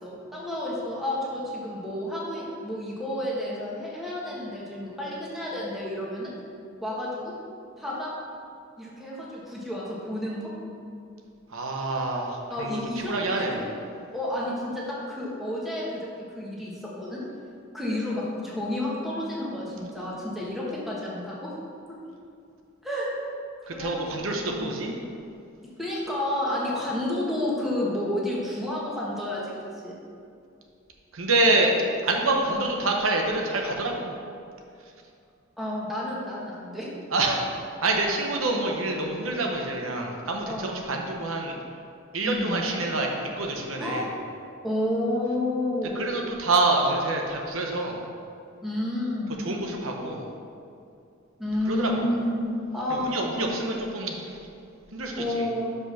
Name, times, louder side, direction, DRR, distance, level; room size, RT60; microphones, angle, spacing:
voice 1, 0.0-6.3 6.8-7.3 7.8-8.1 8.8-10.5 12.5-13.8 14.1-17.2 17.7-21.5 22.8-23.1 23.7-24.7 25.8-30.0 32.5-32.7 35.6-36.9 38.1-38.2 40.4-40.8 42.2-42.7 43.8-44.1 44.6-46.2 48.6-49.5 51.4-53.5 55.2-55.8, left 1 dB, ahead, -6 dB, 1.3 m, -30 dB
voice 2, 11.5-13.7 23.7-24.9 31.1-31.7 32.0-34.1 37.1-37.4 37.8-41.6 42.1-44.1 45.9-48.0 49.4-50.3 51.7-52.1 52.9-54.4 54.9-55.4, right 2 dB, 85° right, 1 dB, 0.9 m, -27 dB
6.1 x 5.2 x 5.6 m, 2.4 s
head